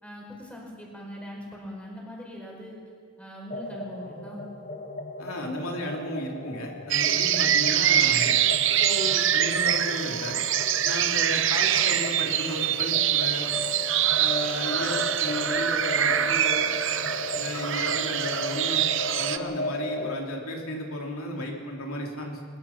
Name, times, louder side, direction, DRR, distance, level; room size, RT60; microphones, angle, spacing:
voice 1, 0.0-2.8 3.2-4.5, equal, 5° left, -2 dB, 4.7 m, -41 dB
sound 1, 3.5-20.2, left 2 dB, 35° left, 1.6 m, -36 dB
voice 2, 5.2-8.3 8.8-10.4 10.8-13.5 14.2-16.7 17.4-22.4, left 1 dB, 90° left, 1 dB, 3.1 m, -34 dB
sound 2, 6.9-19.4, right 10 dB, 60° right, 0.8 m, -24 dB
22.0 x 21.5 x 5.9 m, 2.1 s
head